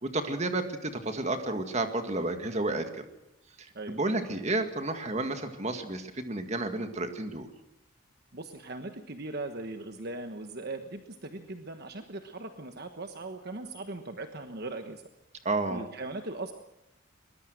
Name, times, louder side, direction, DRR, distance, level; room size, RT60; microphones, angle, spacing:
voice 1, 0.0-3.0 3.6-7.5 15.5-15.8, right 2 dB, 35° right, 7 dB, 1.9 m, -31 dB
voice 2, 8.3-15.1 15.7-16.5, right 2 dB, 50° right, 6 dB, 1.3 m, -39 dB
22.0 x 20.5 x 6.5 m, 0.87 s
head